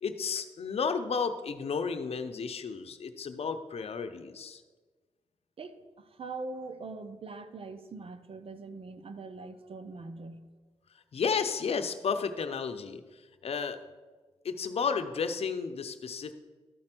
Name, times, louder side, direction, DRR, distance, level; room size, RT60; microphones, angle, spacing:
voice 1, 0.0-4.6 11.1-13.0 13.4-13.8 14.4-16.3, left 5 dB, 60° left, 8 dB, 0.7 m, -32 dB
voice 2, 5.6-10.5, right 3 dB, 55° right, 10 dB, 0.8 m, -42 dB
12.5 x 4.4 x 6.0 m, 1.3 s
cardioid pair, 75°, 11 cm